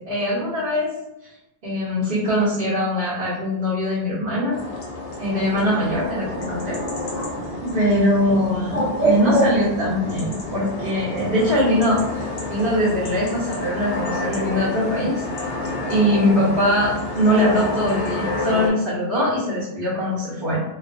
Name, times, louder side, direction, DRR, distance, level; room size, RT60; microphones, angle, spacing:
voice 1, 0.1-0.9 1.6-4.6 5.2-6.8 7.6-15.2 15.9-20.6, equal, 60° right, -10 dB, 1.0 m, -22 dB
sound 1, 4.5-18.7, left 2 dB, 75° left, 0.8 m, -30 dB
Bird, 5.3-10.9, right 1 dB, 10° left, 1.1 m, -27 dB
2.4 x 2.3 x 2.5 m, 0.90 s
omnidirectional pair, 1.0 m